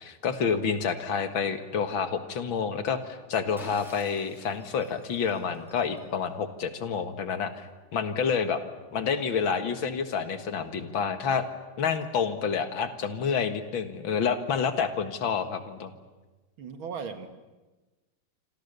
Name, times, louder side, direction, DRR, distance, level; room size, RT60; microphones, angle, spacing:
voice 1, 0.0-7.7 7.9-8.6 8.9-11.4 11.8-15.9, left 6 dB, 75° left, 9 dB, 2.4 m, -28 dB
Shatter, 3.6-6.3, equal, ahead, 7.6 m, -51 dB
voice 2, 16.6-17.3, right 6 dB, 85° right, 8 dB, 2.7 m, -37 dB
27.0 x 26.5 x 6.8 m, 1.2 s
omnidirectional pair, 2.2 m